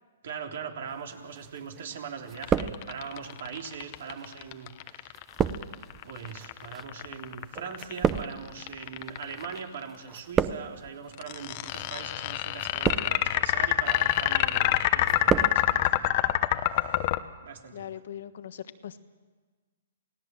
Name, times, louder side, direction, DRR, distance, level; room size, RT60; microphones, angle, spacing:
voice 1, 0.2-5.2 6.0-16.3 17.4-18.0, right 6 dB, 65° right, 3 dB, 3.5 m, -41 dB
sound 1, 1.4-1.9 2.2-3.3 4.0-9.6 9.9-10.9 11.6-11.9 12.6-13.4 13.8-14.3 14.6-15.6 15.8-15.9, right 8 dB, 20° right, 0.8 m, -31 dB
sound 2, 2.4-9.6 11.2-17.2, left 15 dB, 40° left, 1.0 m, -26 dB
voice 2, 17.7-19.0, left 10 dB, 65° left, 11 dB, 1.3 m, -40 dB
28.5 x 18.0 x 7.6 m, 1.4 s
hypercardioid pair, 140°, 0 cm